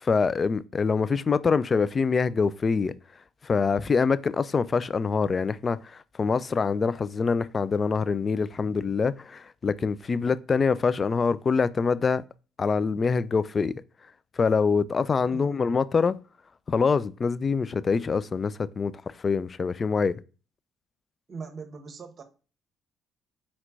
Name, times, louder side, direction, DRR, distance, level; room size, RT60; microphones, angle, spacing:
voice 1, 0.0-2.9 3.4-12.2 12.6-13.8 14.4-16.2 16.7-18.9 19.2-20.1, left 5 dB, 40° left, 0.3 m, -25 dB
voice 2, 15.3-15.6 21.3-22.2, right 4 dB, 45° right, 1.0 m, -41 dB
4.3 x 4.3 x 2.4 m
hypercardioid pair, 50°, 0 cm